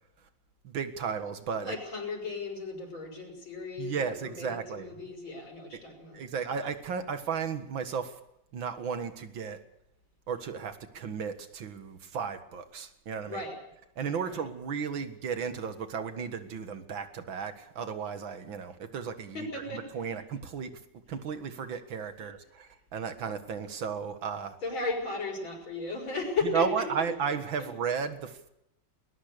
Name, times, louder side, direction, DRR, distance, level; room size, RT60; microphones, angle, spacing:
voice 1, 0.6-1.8 3.8-4.9 6.1-8.2 8.5-9.6 10.3-13.4 14.0-20.7 21.1-24.6 26.5-28.5, right 6 dB, 70° right, 9 dB, 2.4 m, -34 dB
voice 2, 1.6-6.2 13.3-13.6 14.2-14.4 19.3-20.2 22.2-22.3 24.6-26.9, left 3 dB, 70° left, 2 dB, 6.9 m, -35 dB
21.0 x 20.0 x 6.8 m, 0.81 s
omnidirectional pair, 2.3 m